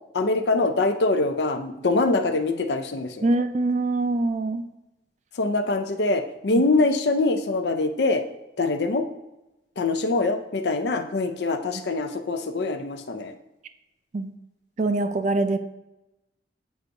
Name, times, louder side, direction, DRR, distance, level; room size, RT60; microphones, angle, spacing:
voice 1, 0.1-3.3 5.4-8.2 8.6-9.1 9.8-13.3, left 3 dB, 65° left, 7 dB, 0.5 m, -24 dB
voice 2, 3.2-4.7 14.1-14.3 14.8-15.6, right 2 dB, 40° right, 10 dB, 0.4 m, -24 dB
8.1 x 4.6 x 2.6 m, 0.95 s
head